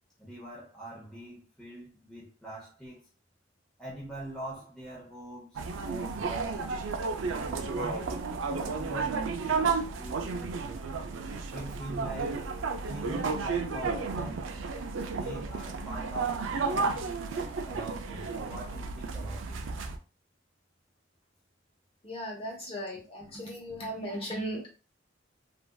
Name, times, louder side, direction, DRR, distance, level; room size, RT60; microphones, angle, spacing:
voice 1, 0.2-3.0 3.8-6.6 7.7-9.2 9.5-10.5 11.5-12.4 12.8-14.6 15.1-17.0 17.3-19.6, right 1 dB, 5° left, 0.7 m, -43 dB
sound 1, 5.5-20.0, right 4 dB, 80° right, 0.4 m, -32 dB
voice 2, 22.0-24.7, equal, 30° left, 0.9 m, -37 dB
3.2 x 2.5 x 2.2 m
head